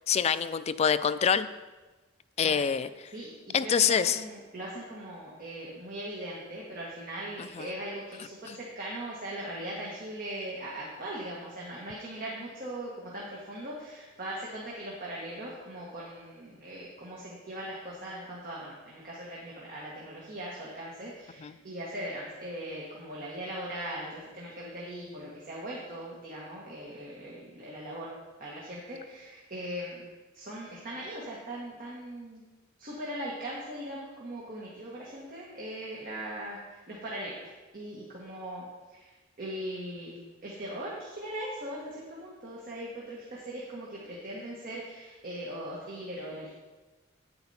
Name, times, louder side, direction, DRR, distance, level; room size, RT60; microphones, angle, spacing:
voice 1, 0.1-1.5 2.4-2.9 3.5-4.2 7.4-7.7 8.5-8.6 21.4-21.5, left 7 dB, 30° left, 13 dB, 0.3 m, -26 dB
voice 2, 3.1-28.1 28.4-30.0 30.3-32.4 32.8-37.5 37.7-38.6 38.9-39.1 39.4-46.5, right 1 dB, 45° right, -5 dB, 1.7 m, -40 dB
9.6 x 8.1 x 4.3 m, 1.2 s
head